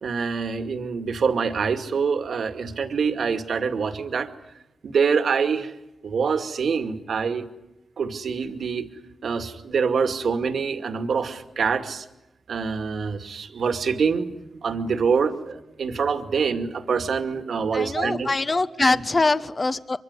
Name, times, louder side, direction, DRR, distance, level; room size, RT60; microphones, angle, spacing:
voice 1, 0.0-4.3 4.8-5.7 6.0-7.5 8.0-8.9 9.2-12.1 12.5-18.3 18.8-19.0, right 5 dB, 80° right, 7 dB, 2.3 m, -25 dB
voice 2, 17.7-20.0, left 3 dB, 40° left, 13 dB, 1.2 m, -23 dB
24.5 x 24.0 x 9.8 m, 0.92 s
cardioid pair, 60°, 0 cm